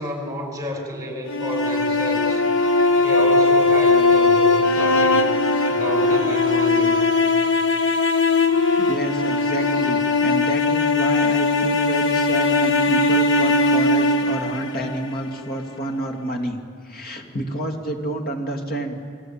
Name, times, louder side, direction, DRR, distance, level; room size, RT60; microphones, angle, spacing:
voice 1, 0.0-2.4 3.0-5.3 5.7-7.0, equal, 15° right, 2 dB, 5.2 m, -29 dB
sound 1, 1.3-15.4, left 3 dB, 60° left, 1.4 m, -19 dB
voice 2, 8.8-16.6 16.8-19.0, right 1 dB, 45° left, 3 dB, 2.7 m, -29 dB
29.5 x 21.0 x 8.9 m, 2.2 s
head